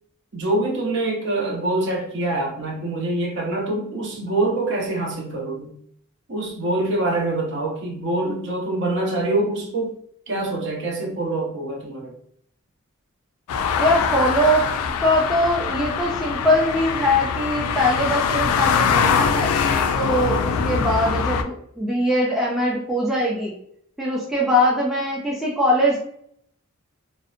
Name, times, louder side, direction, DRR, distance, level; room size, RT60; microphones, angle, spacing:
voice 1, 0.3-5.7 6.3-10.0 10.3-12.1, right 2 dB, 55° right, -1 dB, 0.6 m, -25 dB
sound 1, 13.5-21.4, left 6 dB, 85° left, 0.3 m, -23 dB
voice 2, 13.8-14.6 15.0-19.5 19.9-23.5 24.0-26.0, left 1 dB, ahead, -5 dB, 0.3 m, -21 dB
2.6 x 2.0 x 2.4 m, 0.67 s
head